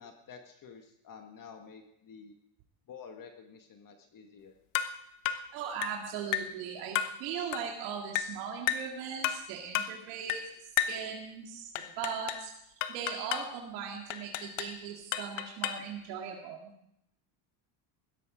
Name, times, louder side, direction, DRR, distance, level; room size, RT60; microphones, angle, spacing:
voice 1, 0.0-2.3 2.9-4.6, left 6 dB, 40° left, 5 dB, 1.7 m, -50 dB
sound 1, 4.7-5.0 5.3-5.5 5.8-6.0 6.3-6.6 7.0-7.2 7.5-7.7 8.2-8.4 8.7-8.9 9.2-9.5 9.7-10.0 10.3-10.5 10.8-11.0 11.8-12.5 12.8-13.5 14.1-14.8 15.1-15.9, left 11 dB, 85° left, 1.1 m, -33 dB
voice 2, 5.5-10.4 10.9-12.5 12.9-16.7, right 7 dB, 85° right, 0 dB, 2.3 m, -39 dB
16.5 x 12.5 x 5.0 m, 0.77 s
supercardioid pair, 110°, 49 cm